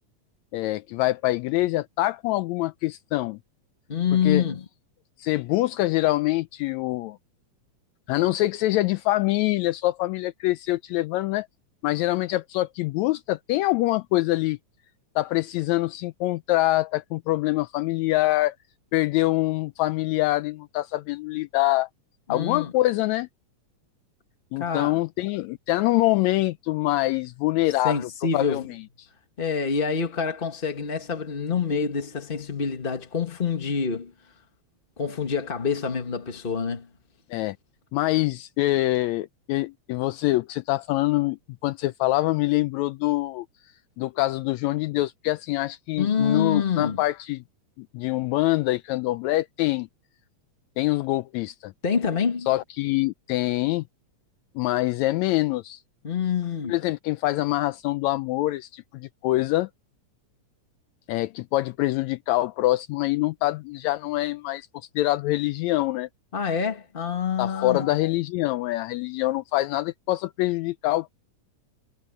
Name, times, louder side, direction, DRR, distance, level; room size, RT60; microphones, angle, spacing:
voice 1, 0.5-3.4 4.2-4.4 5.2-7.2 8.1-11.5 11.8-14.6 15.2-18.6 18.9-21.9 22.3-23.3 24.5-29.1 37.3-37.6 37.9-43.5 44.0-47.4 47.8-49.9 50.8-51.7 52.5-53.8 54.6-55.8 56.6-59.7 61.1-66.1 67.4-71.1, left 18 dB, 80° left, 1.8 m, -25 dB
voice 2, 3.9-4.6 22.3-22.7 24.6-25.0 27.8-28.6 29.4-34.1 35.0-36.9 46.0-47.0 51.8-52.5 56.0-56.8 66.3-67.9, left 6 dB, 35° left, 0.9 m, -26 dB
omnidirectional pair, 3.4 m